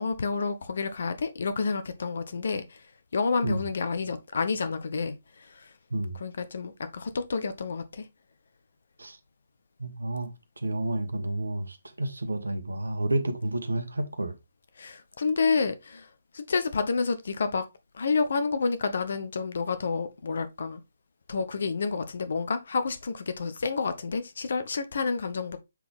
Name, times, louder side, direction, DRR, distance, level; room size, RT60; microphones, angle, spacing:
voice 1, 0.0-2.8 3.1-5.7 6.1-8.1 14.8-16.1 16.3-17.7 17.9-20.8 21.3-25.6, left 4 dB, 55° left, 1.0 m, -29 dB
voice 2, 9.8-10.3 10.6-14.3, right 1 dB, 75° right, 1.2 m, -30 dB
7.4 x 4.0 x 3.5 m
figure-of-eight pair, 135°, 0 cm